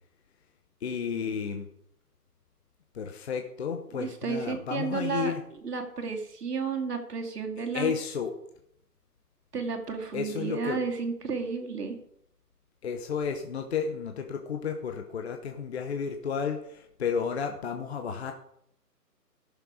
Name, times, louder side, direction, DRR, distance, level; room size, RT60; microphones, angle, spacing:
voice 1, 0.8-1.7 2.9-5.4 7.7-8.3 10.1-10.8 12.8-18.3, left 6 dB, 40° left, 5 dB, 1.0 m, -32 dB
voice 2, 3.9-5.3 5.6-7.9 9.5-12.0, right 5 dB, 70° right, 3 dB, 2.6 m, -32 dB
15.0 x 6.8 x 4.9 m, 0.73 s
hypercardioid pair, 150°, 49 cm